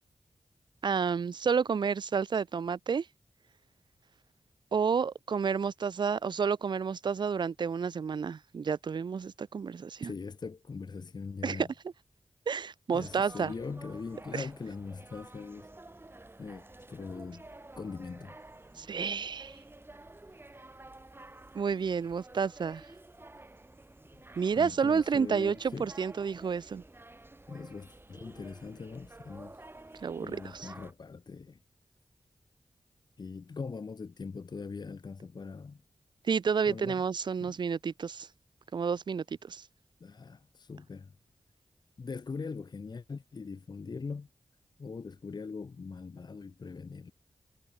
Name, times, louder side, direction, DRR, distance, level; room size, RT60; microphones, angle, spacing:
voice 1, 0.8-3.1 4.7-10.1 11.4-11.7 12.5-13.5 14.3-14.4 18.8-19.6 21.5-22.9 24.4-26.8 30.0-30.7 36.3-38.3 38.7-39.6, right 6 dB, 55° right, 0.4 m, -30 dB
voice 2, 10.0-11.7 12.9-15.7 16.4-17.5 17.8-18.4 24.5-25.9 27.5-29.6 30.2-31.6 33.2-35.8 36.7-37.0 37.4-37.6 40.0-41.1 42.0-44.3 44.8-47.1, left 4 dB, 50° left, 0.7 m, -41 dB
sound 1, 12.9-30.9, right 2 dB, 25° right, 1.4 m, -51 dB
cardioid pair, 40°, 9 cm